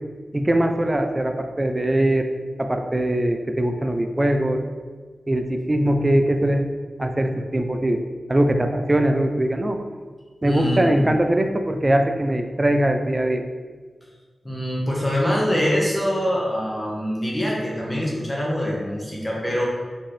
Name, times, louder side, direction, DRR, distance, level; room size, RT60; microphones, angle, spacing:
voice 1, 0.3-2.3 2.6-4.6 5.3-6.7 7.0-9.8 10.4-13.4, right 1 dB, 20° right, 5 dB, 0.3 m, -21 dB
voice 2, 10.4-11.1 14.4-19.7, equal, 15° left, -4 dB, 1.1 m, -24 dB
4.3 x 3.7 x 3.2 m, 1.5 s
wide cardioid pair, 120°, 0 cm